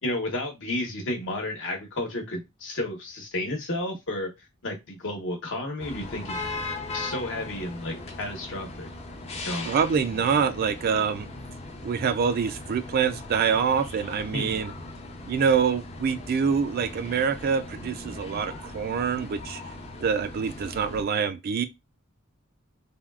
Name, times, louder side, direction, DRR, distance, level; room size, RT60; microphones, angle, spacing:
voice 1, 0.0-4.3 4.6-6.4 6.9-8.9 9.4-9.7 14.3-14.6 20.1-20.2, left 1 dB, 60° left, 1.0 m, -32 dB
sound 1, 5.8-21.0, left 2 dB, 30° left, 0.5 m, -39 dB
voice 2, 9.7-11.3 11.8-14.7 15.3-19.6 20.0-21.6, right 6 dB, 45° right, 0.3 m, -25 dB
3.5 x 2.3 x 2.3 m
head